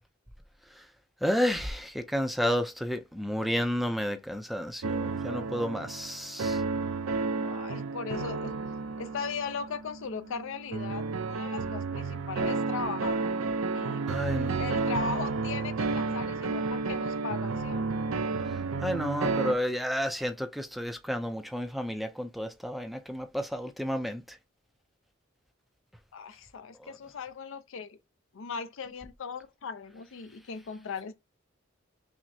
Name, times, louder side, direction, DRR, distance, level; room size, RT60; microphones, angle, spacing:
voice 1, 1.2-6.6 14.1-14.6 18.8-24.2 26.8-26.9, equal, ahead, 0.4 m, -31 dB
sound 1, 4.8-19.5, right 4 dB, 80° right, 0.5 m, -31 dB
voice 2, 7.4-8.5 9.0-13.2 13.7-14.1 14.6-18.1 26.1-28.0 28.3-31.1, left 5 dB, 65° left, 0.5 m, -38 dB
5.9 x 2.1 x 2.6 m
head